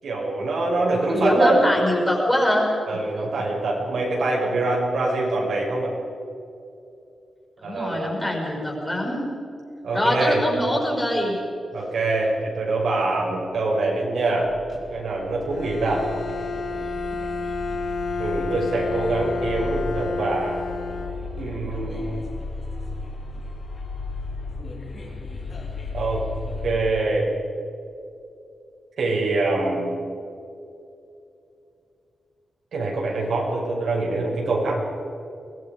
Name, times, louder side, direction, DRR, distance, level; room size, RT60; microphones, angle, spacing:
voice 1, 0.0-1.6 2.9-5.9 7.6-8.2 9.8-10.4 11.7-14.5 14.9-16.1 18.2-20.6 21.3-22.2 25.9-26.2 26.6-27.3 29.0-29.9 32.7-35.0, right 2 dB, 70° right, -3 dB, 6.4 m, -24 dB
voice 2, 1.1-2.7 7.6-9.3 9.9-11.4, left 1 dB, 10° left, -1 dB, 5.8 m, -23 dB
sound 1, 14.4-26.7, left 3 dB, 40° left, 3.4 m, -35 dB
Bowed string instrument, 15.5-21.7, left 4 dB, 60° left, 1.9 m, -30 dB
23.5 x 20.5 x 5.3 m, 2.6 s
wide cardioid pair, 165°, 0 cm